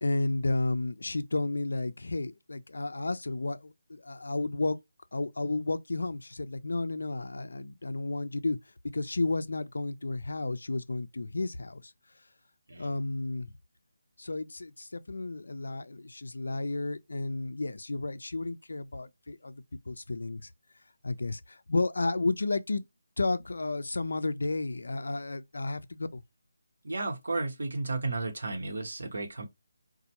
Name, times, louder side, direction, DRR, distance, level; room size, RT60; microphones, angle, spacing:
voice 1, 0.0-4.8 5.1-8.6 8.9-11.9 12.8-13.5 14.2-20.5 21.0-22.8 23.2-26.2, left 2 dB, 70° left, 0.4 m, -32 dB
voice 2, 26.8-29.5, right 3 dB, 70° right, 0.9 m, -33 dB
4.1 x 2.2 x 2.9 m
figure-of-eight pair, 155°, 0 cm